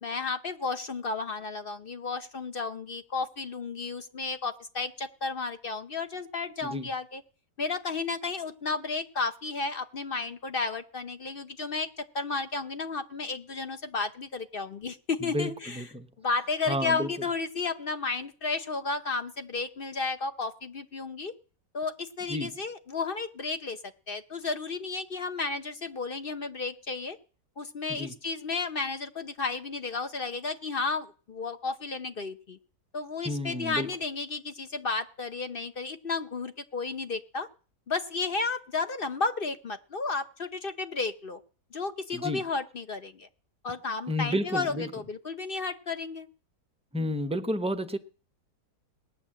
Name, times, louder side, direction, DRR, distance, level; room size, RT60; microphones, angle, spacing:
voice 1, 0.0-7.2 7.6-15.8 16.2-21.3 21.7-23.8 24.1-27.2 27.6-32.6 32.9-37.5 37.9-41.4 41.7-43.3 43.6-46.3, left 4 dB, 45° left, 0.8 m, -33 dB
voice 2, 15.2-16.1 16.7-17.1 22.3-22.5 27.9-28.1 33.2-33.9 42.1-42.4 44.1-44.9 46.9-48.0, equal, 5° right, 0.4 m, -31 dB
18.5 x 9.9 x 7.5 m
omnidirectional pair, 1.8 m